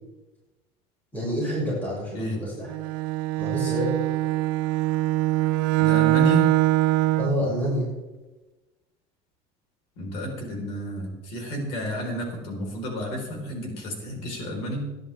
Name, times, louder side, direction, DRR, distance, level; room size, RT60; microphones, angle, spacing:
voice 1, 1.1-2.7 3.4-3.9 7.2-7.9, equal, 15° left, -7 dB, 6.0 m, -27 dB
Bowed string instrument, 2.7-7.4, right 16 dB, 80° right, 0.5 m, -23 dB
voice 2, 5.8-6.5 10.0-14.9, left 1 dB, 50° left, 2 dB, 3.9 m, -31 dB
22.0 x 10.5 x 3.4 m, 1.1 s
cardioid pair, 175°, 12 cm